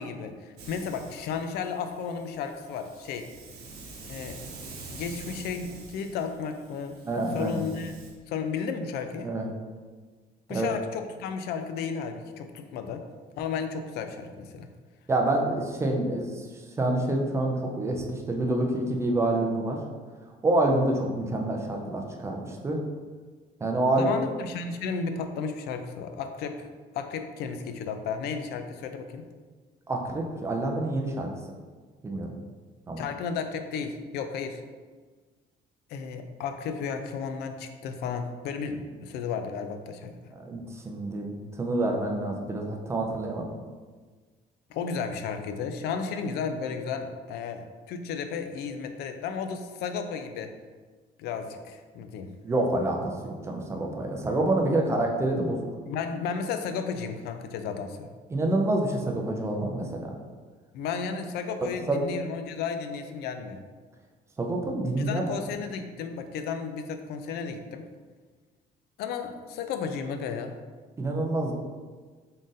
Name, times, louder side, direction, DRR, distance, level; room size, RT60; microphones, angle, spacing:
voice 1, 0.0-3.3 4.1-4.4 4.9-7.0 7.3-8.0 8.3-9.3 10.5-13.1 13.4-14.7 24.0-26.7 26.9-29.2 33.0-34.6 35.9-40.2 44.7-50.5 51.2-52.3 55.9-58.1 60.7-63.6 65.0-67.9 69.0-70.5, left 6 dB, 80° left, 7 dB, 0.4 m, -33 dB
Hiss, 0.6-8.1, right 3 dB, 75° right, 0.8 m, -46 dB
voice 2, 7.0-7.6 9.2-9.5 10.5-10.7 15.1-16.3 16.8-19.8 20.4-22.8 23.6-24.1 29.9-31.3 32.0-32.3 32.9-33.0 40.5-43.5 52.4-55.6 58.3-60.2 61.9-62.0 64.4-65.2 71.0-71.5, right 2 dB, 15° right, 1 dB, 0.4 m, -27 dB
3.8 x 2.5 x 3.9 m, 1.4 s
cardioid pair, 160°, 17 cm